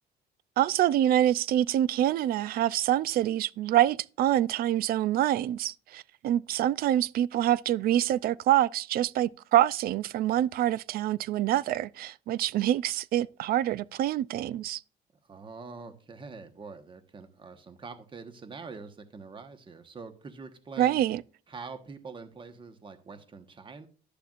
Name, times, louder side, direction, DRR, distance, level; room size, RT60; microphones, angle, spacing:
voice 1, 0.6-14.8 20.8-21.2, right 12 dB, 60° right, 0.4 m, -26 dB
voice 2, 15.2-21.0 21.5-23.9, right 4 dB, 30° right, 1.2 m, -44 dB
11.5 x 6.8 x 2.5 m
cardioid pair, 110°, 17 cm